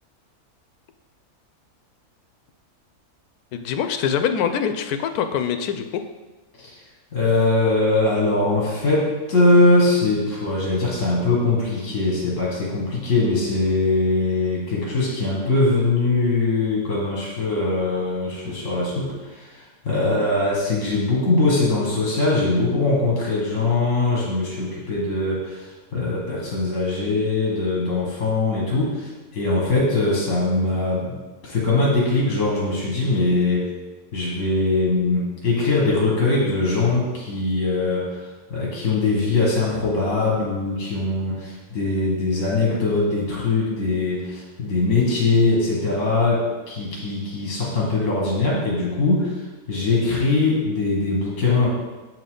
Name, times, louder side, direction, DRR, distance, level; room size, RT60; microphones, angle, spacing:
voice 1, 3.5-5.9, left 7 dB, 85° left, 8 dB, 1.1 m, -24 dB
voice 2, 7.1-31.2 31.4-33.7 34.1-51.7, left 3 dB, 60° left, -4 dB, 1.9 m, -21 dB
7.5 x 5.8 x 3.8 m, 1.2 s
omnidirectional pair, 1.6 m